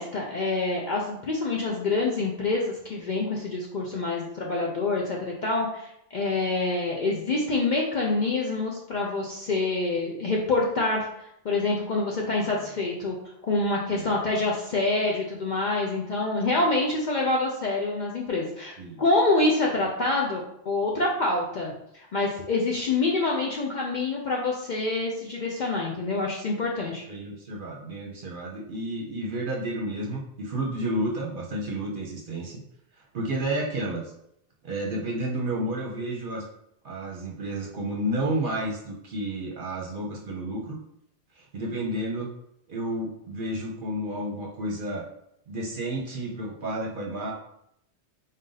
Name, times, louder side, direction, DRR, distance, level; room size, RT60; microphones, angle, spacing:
voice 1, 0.0-13.1 13.4-27.0, left 2 dB, 55° left, -2 dB, 0.6 m, -26 dB
voice 2, 27.1-32.6 33.1-34.0 34.6-36.4 36.8-40.8 41.3-42.3 42.7-45.0 45.5-47.3, right 1 dB, 55° right, -2 dB, 0.8 m, -31 dB
3.9 x 2.6 x 3.9 m, 0.75 s
omnidirectional pair, 1.1 m